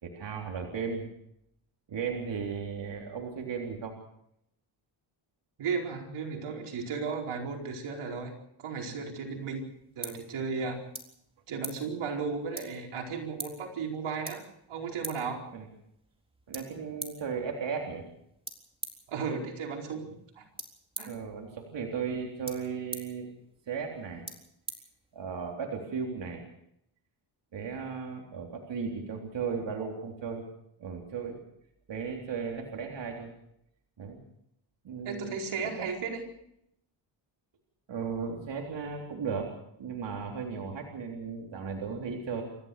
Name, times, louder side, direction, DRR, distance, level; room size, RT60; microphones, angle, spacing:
voice 1, 0.0-1.0 1.9-4.0 15.5-15.7 16.5-18.0 21.0-23.3 23.7-24.2 25.1-26.4 27.5-30.4 30.8-31.4 31.9-33.3 34.0-34.2 34.8-35.4 35.8-35.9 37.9-39.5 39.8-42.4, right 6 dB, 60° right, 0 dB, 3.8 m, -35 dB
voice 2, 5.6-8.3 8.6-9.6 10.0-10.8 11.5-14.4 14.7-15.4 19.1-20.4 21.0-21.1 35.0-36.2, right 5 dB, 80° right, 1 dB, 4.9 m, -35 dB
sound 1, 9.3-25.5, right 1 dB, 10° right, 3.8 m, -47 dB
27.5 x 14.5 x 6.8 m, 0.76 s
cardioid pair, 85°, 49 cm